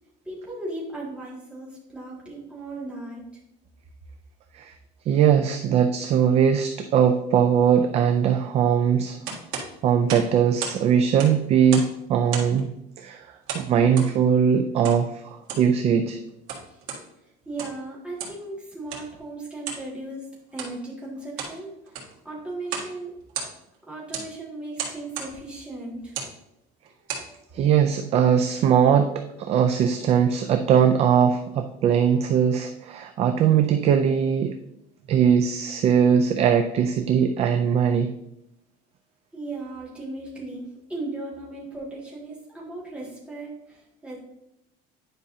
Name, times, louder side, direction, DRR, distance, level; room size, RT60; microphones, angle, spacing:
voice 1, 0.2-3.2 9.7-9.8 16.7-16.8 17.5-20.3 20.5-23.1 23.9-26.2 27.3-27.4 39.3-44.2, right 2 dB, 5° right, -6 dB, 1.9 m, -37 dB
voice 2, 5.1-9.2 9.8-12.7 13.0-13.3 13.5-16.2 27.5-34.5 35.1-38.1, right 8 dB, 35° right, 7 dB, 0.3 m, -20 dB
sound 1, 9.2-10.8 11.1-12.0 12.3-12.6 13.5-14.1 14.8-15.0 15.4-15.7 16.3-17.0 17.4-17.8 18.2-18.4 18.9-19.1 19.6-19.9 20.5-20.7 21.2-21.6 21.9-22.2 22.6-22.9 23.2-23.7 24.1-24.3 24.8-25.3 26.0-26.3 26.9-27.3, right 6 dB, 90° right, 1.8 m, -34 dB
10.0 x 5.2 x 2.7 m, 0.82 s
cardioid pair, 175°, 20 cm